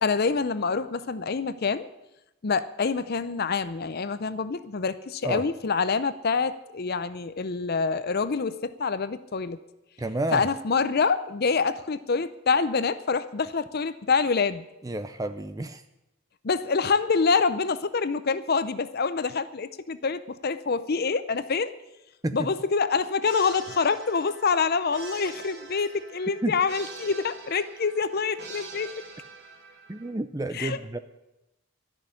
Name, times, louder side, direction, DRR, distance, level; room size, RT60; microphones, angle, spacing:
voice 1, 0.0-1.9 2.4-9.6 10.3-14.7 16.4-21.7 22.3-28.9 30.5-31.0, left 5 dB, 45° left, 13 dB, 0.6 m, -26 dB
voice 2, 10.0-10.5 14.8-15.8 22.2-22.4 26.4-26.6 29.9-31.0, right 2 dB, 15° right, 10 dB, 0.5 m, -30 dB
sound 1, 23.2-30.1, right 4 dB, 50° right, 2.1 m, -44 dB
13.0 x 6.4 x 9.9 m, 0.95 s
head